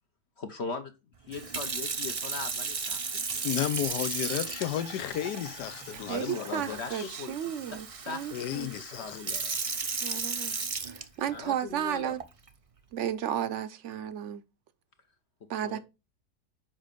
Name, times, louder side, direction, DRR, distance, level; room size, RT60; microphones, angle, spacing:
voice 1, 0.4-0.9 1.3-3.4 6.0-7.3 7.7-9.6 10.5-10.6 11.3-12.1 15.6-15.8, left 4 dB, 55° left, 0.8 m, -40 dB
Sink (filling or washing) / Fill (with liquid), 1.3-11.5 12.2-12.5, right 4 dB, 35° right, 0.5 m, -35 dB
voice 2, 3.4-7.2 8.3-9.4, left 12 dB, 80° left, 1.2 m, -33 dB
voice 3, 6.1-8.7 10.0-10.6 10.8-12.2 12.9-14.4 15.5-15.8, right 10 dB, 60° right, 0.9 m, -33 dB
7.4 x 5.2 x 5.1 m
omnidirectional pair, 1.7 m